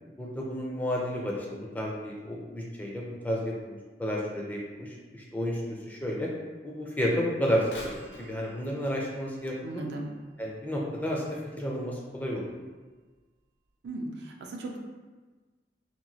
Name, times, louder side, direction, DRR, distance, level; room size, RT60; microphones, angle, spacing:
voice 1, 0.2-6.3 6.6-9.8 10.4-12.5, equal, 10° left, -3 dB, 0.4 m, -32 dB
Bird vocalization bird call bird song / Telephone, 7.7-11.4 12.0-12.1 12.9-13.0 13.7-13.8, left 1 dB, 80° left, 0.6 m, -48 dB
voice 2, 9.6-10.1 13.8-14.8, right 2 dB, 70° right, 1 dB, 0.4 m, -37 dB
2.9 x 2.6 x 2.7 m, 1.3 s
head